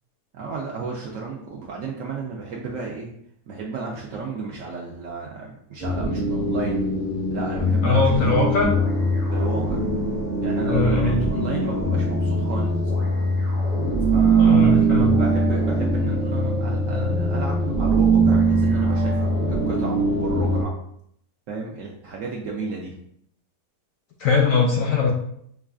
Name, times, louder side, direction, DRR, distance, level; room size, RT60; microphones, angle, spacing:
voice 1, 0.3-3.1 3.5-6.8 7.3-8.5 9.3-9.9 10.4-12.8 14.1-20.8 21.5-23.0, right 4 dB, 70° right, -2 dB, 0.8 m, -33 dB
sound 1, 5.8-20.6, right 2 dB, 35° right, 0.7 m, -21 dB
voice 2, 7.8-8.7 10.7-11.2 14.4-15.1 24.2-25.1, left 4 dB, 70° left, 0 dB, 0.8 m, -21 dB
5.4 x 2.4 x 2.3 m, 0.69 s
omnidirectional pair, 1.8 m